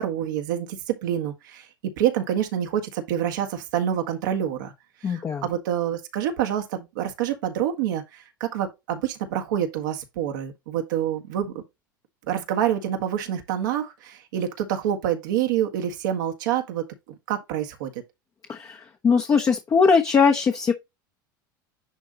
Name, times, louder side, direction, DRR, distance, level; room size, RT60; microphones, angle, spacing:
voice 1, 0.0-1.7 2.0-4.7 5.0-11.6 12.3-17.9, right 10 dB, 70° right, 1.7 m, -27 dB
voice 2, 5.0-5.4 18.5-18.8 19.0-20.7, left 5 dB, 30° left, 1.1 m, -20 dB
10.5 x 3.7 x 2.9 m
hypercardioid pair, 80°, 11 cm